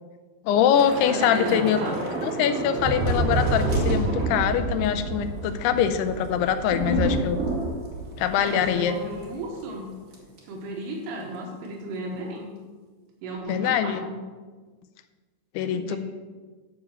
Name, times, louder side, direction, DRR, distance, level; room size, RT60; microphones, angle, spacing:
voice 1, 0.5-1.8 2.2-7.4 8.2-8.9 13.5-14.0 15.6-16.0, left 9 dB, 85° left, 9 dB, 2.6 m, -23 dB
Thunder / Rain, 0.7-9.3 9.6-9.8 10.1-10.4, right 2 dB, 35° right, 1.5 m, -28 dB
voice 2, 1.0-2.0 6.8-7.3 8.4-9.9 10.5-12.5 13.2-14.1 15.7-16.0, right 1 dB, 85° right, -1 dB, 3.4 m, -33 dB
11.0 x 4.9 x 7.1 m, 1.4 s
omnidirectional pair, 4.8 m